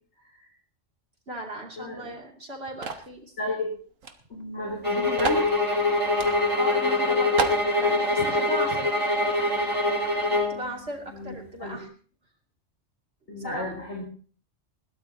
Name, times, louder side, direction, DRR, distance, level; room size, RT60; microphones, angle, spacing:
voice 1, 1.3-3.3 6.6-9.3 10.3-11.9 13.4-13.7, right 2 dB, 50° right, 0 dB, 3.2 m, -37 dB
voice 2, 1.8-2.2 3.4-3.7 4.3-5.5 11.1-11.8 13.3-14.0, left 1 dB, 60° left, -1 dB, 4.0 m, -33 dB
sound 1, 2.8-3.1 4.0-4.1 4.4-4.5 5.2-5.5 6.2-6.4 6.8-6.9 7.4-7.7, right 5 dB, 85° right, 1.6 m, -29 dB
sound 2, 4.8-10.6, left 2 dB, 15° right, 7.3 m, -24 dB
21.0 x 16.0 x 2.9 m, 0.41 s
omnidirectional pair, 1.3 m